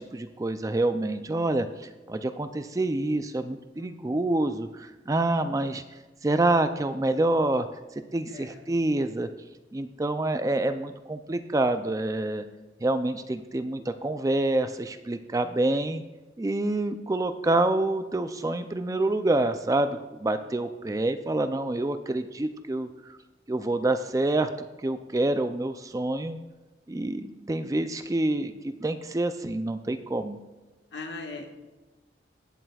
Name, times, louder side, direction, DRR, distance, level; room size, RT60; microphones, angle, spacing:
voice 1, 0.0-5.8 6.2-7.7 8.1-9.3 9.7-12.4 12.8-16.0 16.4-22.9 23.5-24.5 24.8-26.4 26.9-28.5 28.8-30.4, right 2 dB, 20° right, 9 dB, 0.3 m, -27 dB
voice 2, 3.8-4.2 8.3-8.6 16.6-16.7 20.4-20.5 30.9-31.5, left 3 dB, 70° left, 2 dB, 1.5 m, -40 dB
20.0 x 7.5 x 2.4 m, 1.1 s
head